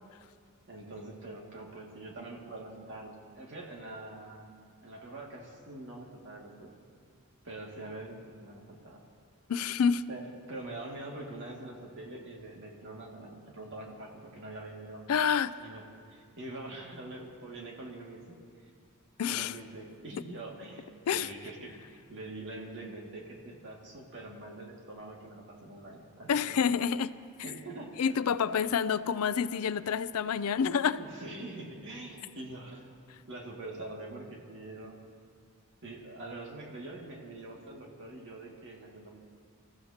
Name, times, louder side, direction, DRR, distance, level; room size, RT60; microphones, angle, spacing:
voice 1, 0.7-4.5 4.8-6.7 7.4-9.0 10.1-15.0 15.6-18.3 19.3-26.7 27.4-28.0 31.0-32.9 33.3-35.0 35.8-39.1, right 2 dB, 55° right, 2.3 m, -44 dB
voice 2, 9.5-10.0 15.1-15.5 19.2-19.6 21.1-21.3 26.3-27.1 28.0-31.0, left 7 dB, 75° left, 0.4 m, -28 dB
26.5 x 14.5 x 2.9 m
head